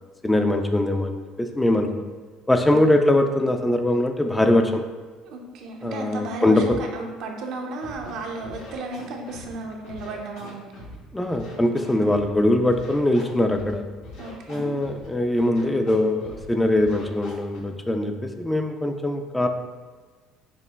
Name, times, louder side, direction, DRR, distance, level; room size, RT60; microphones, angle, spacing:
voice 1, 0.2-2.0 2.5-4.8 5.8-6.8 11.1-13.9 14.5-19.5, left 1 dB, 10° left, 5 dB, 0.3 m, -22 dB
voice 2, 5.3-10.7 14.2-14.7, right 2 dB, 65° right, 2 dB, 0.5 m, -34 dB
Scratching (performance technique), 7.8-8.1 8.4-9.5 9.8-10.9 11.3-12.4 12.7-13.7 14.0-15.1 15.4-15.9 16.2-16.5 16.7-17.6, left 1 dB, 70° left, 1.0 m, -42 dB
5.2 x 2.1 x 2.2 m, 1.4 s
hypercardioid pair, 65°, 0 cm